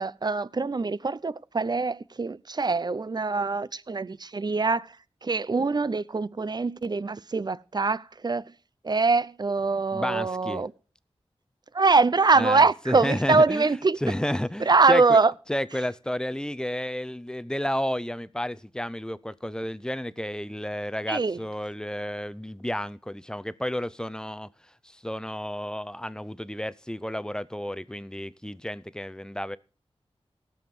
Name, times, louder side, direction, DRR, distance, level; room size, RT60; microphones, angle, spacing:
voice 1, 0.0-5.0 5.2-8.4 8.8-10.7 11.7-14.0 14.6-15.3 21.1-21.4, right 4 dB, 40° right, 0.6 m, -23 dB
voice 2, 9.9-10.6 12.4-13.7 14.0-15.2 15.5-24.5 24.8-29.6, left 1 dB, 5° left, 0.6 m, -31 dB
16.5 x 7.1 x 6.1 m
wide cardioid pair, 75°, 11 cm